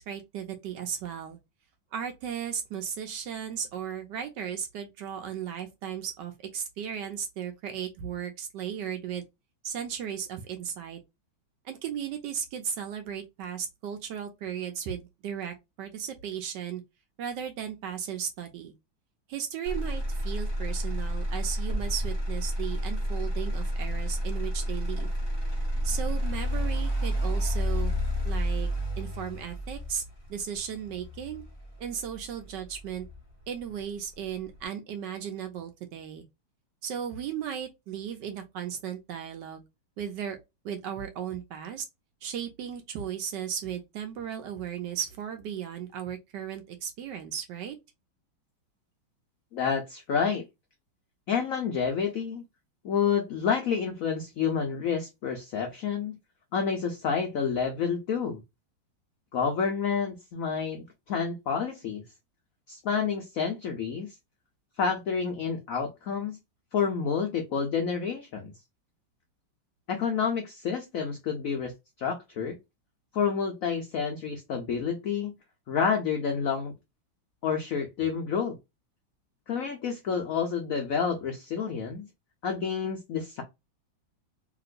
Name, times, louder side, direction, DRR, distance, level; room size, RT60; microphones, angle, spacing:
voice 1, 0.0-1.4 1.9-9.3 9.6-11.0 11.6-16.8 17.2-18.7 19.3-25.1 25.8-28.0 28.2-28.7 29.0-30.0 30.3-31.4 31.8-33.1 33.5-36.3 36.8-39.6 40.0-40.4 40.6-41.8 42.2-47.8, right 8 dB, 75° right, 1.1 m, -36 dB
Motor vehicle (road), 19.7-33.7 34.1-34.6, equal, 25° left, 0.5 m, -30 dB
voice 2, 49.5-50.4 51.3-52.4 52.8-56.2 56.5-58.4 59.3-62.0 62.7-64.1 64.8-66.4 66.7-68.5 69.9-71.7 72.0-72.6 73.1-75.3 75.7-76.7 77.4-78.6 79.5-82.0 82.4-83.4, left 6 dB, 80° left, 0.7 m, -29 dB
2.9 x 2.9 x 2.5 m
omnidirectional pair, 2.2 m